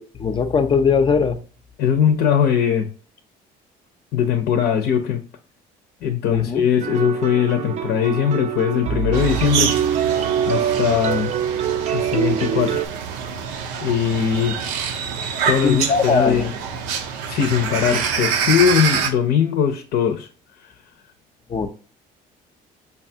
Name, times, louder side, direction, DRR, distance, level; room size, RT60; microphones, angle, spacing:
voice 1, 0.2-1.4 6.3-6.6 15.6-16.4 21.5-21.7, left 5 dB, 30° left, 0.5 m, -19 dB
voice 2, 1.8-2.9 4.1-5.2 6.0-9.7 10.5-11.3 11.9-12.9 13.8-14.6 15.5-16.5 17.3-20.3 20.6-20.7, left 8 dB, 70° left, 0.6 m, -20 dB
sound 1, 6.8-12.9, right 9 dB, 40° right, 0.4 m, -24 dB
sound 2, 9.1-19.1, right 7 dB, 90° right, 0.6 m, -26 dB
5.3 x 2.3 x 2.7 m
cardioid pair, 95°, 17 cm